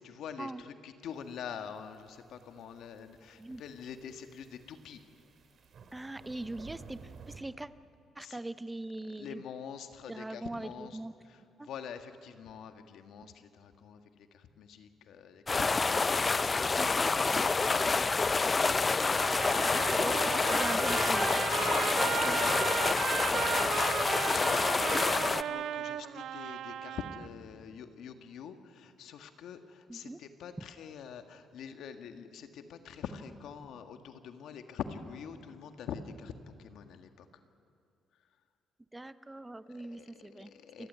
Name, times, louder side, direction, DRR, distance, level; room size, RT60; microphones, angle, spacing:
voice 1, 0.0-5.0 8.2-8.4 9.1-11.0 11.3-17.8 22.1-37.3 39.7-40.9, left 7 dB, 75° left, 7 dB, 1.7 m, -45 dB
sound 1, 1.3-7.4, right 5 dB, 60° right, 2.9 m, -55 dB
voice 2, 5.9-7.0 7.3-7.7 8.2-9.4 10.1-11.1 11.6-11.7 16.8-16.9 19.9-21.3 21.5-21.6 22.2-22.4 29.9-30.2 38.9-40.5 40.8-40.9, right 2 dB, 15° right, 14 dB, 0.6 m, -41 dB
sound 2, 15.5-25.4, left 4 dB, 30° left, 0.6 m, -28 dB
Trumpet, 19.1-27.3, right 10 dB, 75° right, 0.7 m, -35 dB
28.0 x 14.5 x 9.6 m, 2.4 s
cardioid pair, 90°, 0 cm